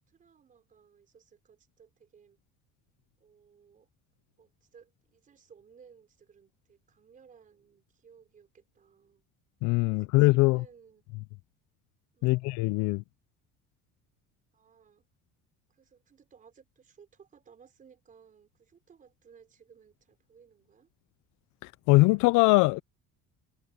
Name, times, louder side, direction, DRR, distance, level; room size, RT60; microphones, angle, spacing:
voice 1, 0.1-2.4 3.2-3.9 4.4-9.3 9.8-11.0 12.1-12.4 14.5-15.1 15.7-20.9, right 6 dB, 25° right, 4.9 m, -59 dB
voice 2, 9.6-10.6 12.2-13.0 21.6-22.8, left 23 dB, 70° left, 0.5 m, -22 dB
cardioid pair, 175°, 31 cm